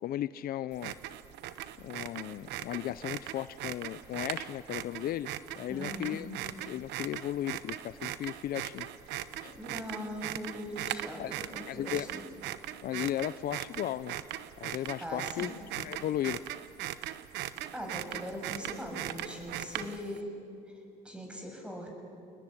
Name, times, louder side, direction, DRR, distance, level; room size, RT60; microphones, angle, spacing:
voice 1, 0.0-1.0 1.8-5.3 5.6-6.3 6.6-8.9 9.4-9.6 11.2-11.3 11.7-12.1 12.8-14.2 14.6-16.4, left 12 dB, 60° left, 16 dB, 0.6 m, -35 dB
sound 1, 0.7-20.2, right 13 dB, 85° right, 1.1 m, -39 dB
voice 2, 5.7-6.2 9.5-12.2 15.0-15.5 17.7-20.3 21.0-21.9, equal, 5° right, 2 dB, 7.1 m, -40 dB
29.5 x 19.5 x 10.0 m, 2.6 s
cardioid pair, 110°, 17 cm